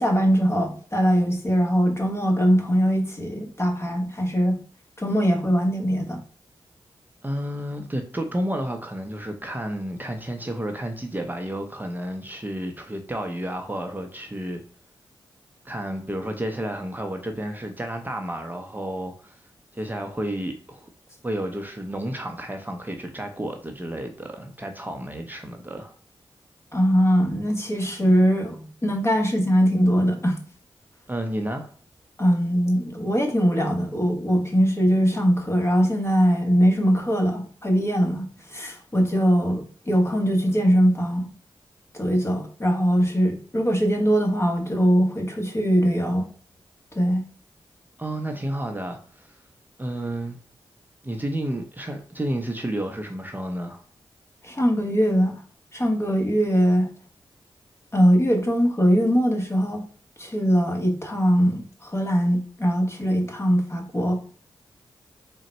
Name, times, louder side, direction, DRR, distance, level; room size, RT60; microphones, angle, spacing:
voice 1, 0.0-4.6 5.0-6.2 26.7-30.4 32.2-41.3 41.9-46.2 46.9-47.2 54.4-55.3 55.7-56.9 57.9-59.8 60.2-64.2, equal, 25° left, 1.1 m, -21 dB
voice 2, 7.2-14.6 15.6-19.4 19.7-20.9 21.2-25.9 31.1-31.7 48.0-49.4 49.8-50.4 51.0-53.8, right 1 dB, 20° right, 0.6 m, -31 dB
3.8 x 2.1 x 4.2 m
cardioid pair, 45°, 10 cm